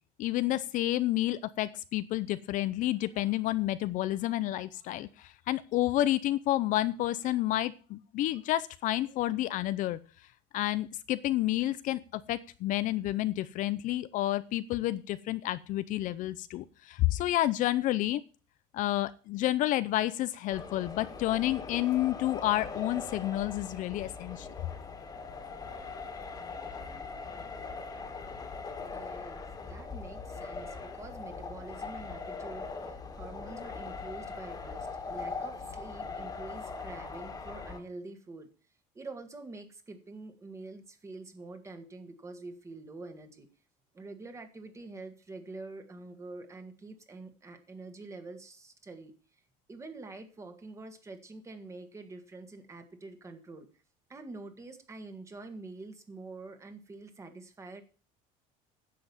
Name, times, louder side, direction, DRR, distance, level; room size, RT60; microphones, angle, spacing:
voice 1, 0.2-10.0 10.5-18.2 18.7-24.5, left 15 dB, 55° left, 14 dB, 0.6 m, -30 dB
sound 1, 20.5-37.8, left 4 dB, 25° left, 2.0 m, -41 dB
voice 2, 28.9-38.5 38.9-43.5 43.9-49.1 49.7-53.7 54.1-57.8, right 3 dB, 20° right, 7 dB, 1.8 m, -46 dB
10.0 x 7.8 x 7.1 m, 0.37 s
cardioid pair, 155°, 16 cm